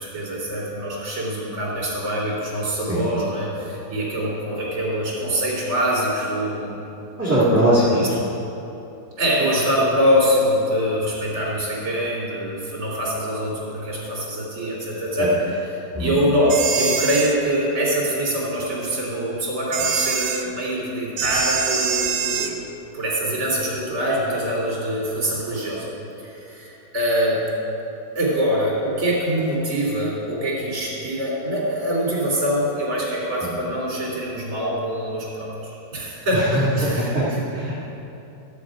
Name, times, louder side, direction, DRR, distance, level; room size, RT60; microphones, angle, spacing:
voice 1, 0.0-6.8 7.9-8.1 9.2-15.3 16.0-22.6 22.9-25.9 26.2-27.4 28.1-37.4, equal, 40° right, -7 dB, 3.2 m, -24 dB
voice 2, 7.2-8.1 15.2-15.3 15.9-16.2 33.4-33.5 36.3-37.2 37.5-37.8, right 1 dB, 5° right, -11 dB, 1.7 m, -21 dB
sound 1, 16.5-17.4 19.7-20.4 21.2-22.5, right 6 dB, 65° right, 1.3 m, -24 dB
13.0 x 7.9 x 5.0 m, 3.0 s
omnidirectional pair, 2.2 m